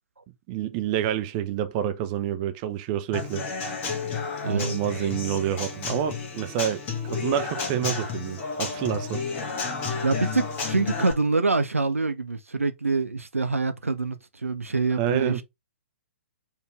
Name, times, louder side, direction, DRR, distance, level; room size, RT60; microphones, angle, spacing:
voice 1, 0.5-3.4 4.4-9.2 15.0-15.4, right 10 dB, 30° right, 0.7 m, -28 dB
Human voice / Acoustic guitar / Drum, 3.1-11.1, left 5 dB, 25° left, 1.4 m, -31 dB
voice 2, 4.4-4.8 10.0-15.4, right 3 dB, 80° right, 0.6 m, -25 dB
4.6 x 3.4 x 3.4 m
figure-of-eight pair, 120°, 7 cm